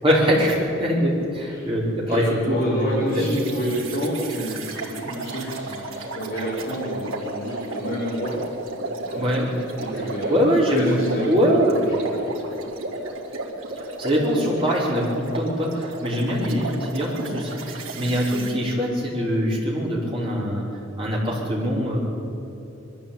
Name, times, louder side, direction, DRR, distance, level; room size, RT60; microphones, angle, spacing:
voice 1, 0.0-3.2 9.2-9.5 10.3-10.9 11.3-11.8 14.0-20.6 21.0-22.0, equal, 25° right, -5 dB, 5.4 m, -23 dB
voice 2, 2.1-8.4 9.0-9.4 9.8-12.0, equal, 45° left, -9 dB, 5.2 m, -29 dB
sound 1, 3.1-18.5, right 2 dB, 85° right, 3.1 m, -33 dB
22.0 x 14.0 x 8.9 m, 2.9 s
head